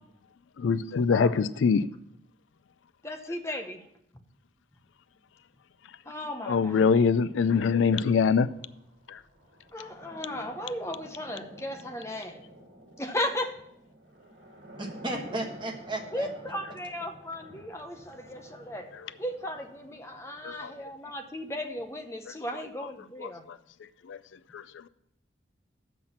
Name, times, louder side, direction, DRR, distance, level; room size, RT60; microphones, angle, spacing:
voice 1, 0.6-1.9 6.5-8.5 9.1-9.2 20.4-20.7 23.2-23.3 24.1-24.2 24.5-24.9, left 5 dB, 85° left, 0.4 m, -24 dB
voice 2, 3.0-3.8 6.1-6.9 9.7-12.5 13.0-13.6 16.1-18.9 19.2-23.5, left 1 dB, 15° left, 0.7 m, -36 dB
sound 1, 7.6-21.4, right 1 dB, 65° right, 2.1 m, -51 dB
voice 3, 14.8-16.3, right 1 dB, 25° right, 1.2 m, -34 dB
7.2 x 6.0 x 7.1 m
head